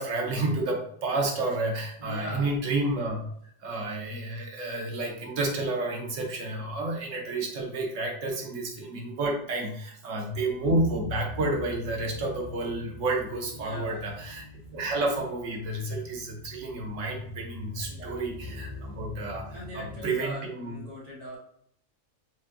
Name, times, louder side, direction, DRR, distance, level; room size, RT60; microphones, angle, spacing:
voice 1, 0.0-3.2 3.6-14.4 14.7-20.8, right 2 dB, 90° right, 0 dB, 1.2 m, -30 dB
voice 2, 2.0-2.5 13.5-14.0 17.8-18.2 19.4-21.4, equal, 30° right, -5 dB, 1.3 m, -41 dB
sound 1, 10.3-20.1, left 2 dB, 50° left, 0.6 m, -43 dB
6.0 x 2.6 x 2.5 m, 0.68 s
omnidirectional pair, 1.2 m